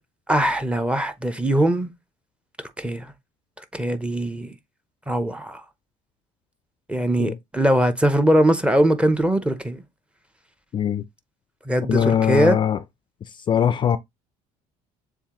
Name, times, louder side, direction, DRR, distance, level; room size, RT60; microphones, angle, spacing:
voice 1, 0.3-1.9 2.8-3.1 3.7-4.5 5.1-5.6 6.9-9.8 11.7-12.6, right 1 dB, 5° right, 0.7 m, -21 dB
voice 2, 10.7-11.0 11.9-12.8 13.5-14.0, left 8 dB, 35° left, 0.4 m, -21 dB
7.1 x 2.5 x 2.9 m
cardioid pair, 110°, 15 cm